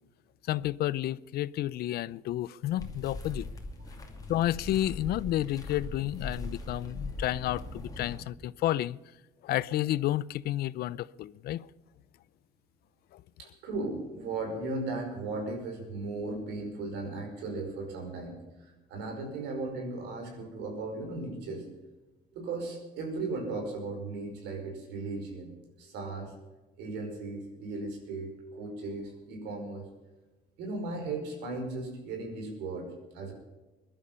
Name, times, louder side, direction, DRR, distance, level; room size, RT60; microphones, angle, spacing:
voice 1, 0.5-3.5 4.3-9.0 9.4-11.7 13.1-13.2, left 14 dB, 65° left, 0.5 m, -31 dB
sound 1, 2.8-8.2, left 2 dB, 20° left, 2.6 m, -40 dB
voice 2, 13.4-21.7 22.3-25.5 25.8-26.3 26.8-29.9 30.6-33.3, right 3 dB, 85° right, 5.2 m, -36 dB
22.0 x 11.5 x 5.6 m
cardioid pair, 110°, 17 cm